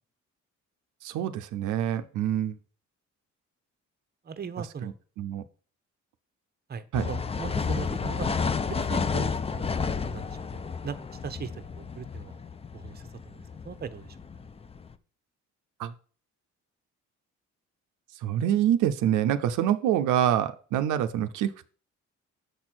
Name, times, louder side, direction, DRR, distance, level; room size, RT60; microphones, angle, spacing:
voice 1, 1.0-2.6 4.8-5.4 6.9-7.1 15.8-15.9 18.2-21.7, right 10 dB, 85° right, 10 dB, 0.5 m, -26 dB
voice 2, 4.2-4.9 6.7-11.0 11.2-12.4 12.7-13.4 13.6-14.1, right 6 dB, 35° right, 10 dB, 0.7 m, -39 dB
sound 1, 6.9-14.9, left 5 dB, 20° left, 0.4 m, -31 dB
6.8 x 4.4 x 6.0 m, 0.42 s
cardioid pair, 90°, 30 cm